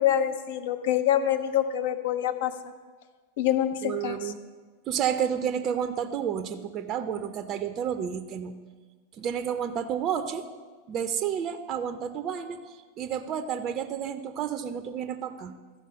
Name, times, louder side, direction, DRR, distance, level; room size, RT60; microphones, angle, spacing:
voice 1, 0.0-2.5 3.4-4.3, left 11 dB, 55° left, 8 dB, 0.8 m, -26 dB
voice 2, 3.8-4.4 4.9-8.5 9.2-10.5 10.9-12.6 13.0-15.5, right 8 dB, 35° right, 9 dB, 0.6 m, -30 dB
13.0 x 5.4 x 6.4 m, 1.4 s
figure-of-eight pair, 90°, 0 cm